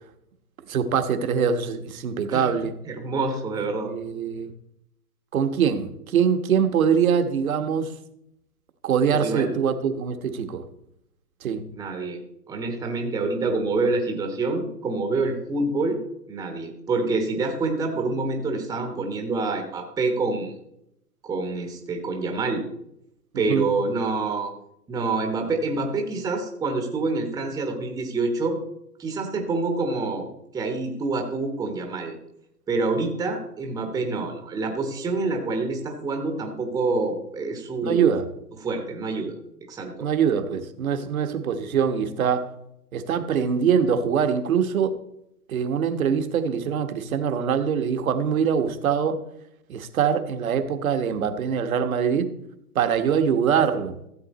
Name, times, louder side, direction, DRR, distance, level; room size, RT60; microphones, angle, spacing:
voice 1, 0.7-2.7 3.8-4.5 5.3-7.9 8.8-10.6 11.4-11.6 23.3-23.7 37.8-38.3 40.0-42.5 42.9-44.9 45.5-49.2 49.7-52.3 52.7-54.0, right 7 dB, 60° right, 9 dB, 1.4 m, -23 dB
voice 2, 2.8-3.9 9.1-9.5 11.7-12.2 12.5-16.0 16.3-20.5 21.2-22.6 23.3-24.5 24.9-28.6 29.0-30.3 30.5-32.2 32.7-38.1 38.6-39.4 39.7-40.1, right 3 dB, 5° right, 4 dB, 1.0 m, -27 dB
14.0 x 7.6 x 4.1 m, 0.79 s
hypercardioid pair, 130°, 47 cm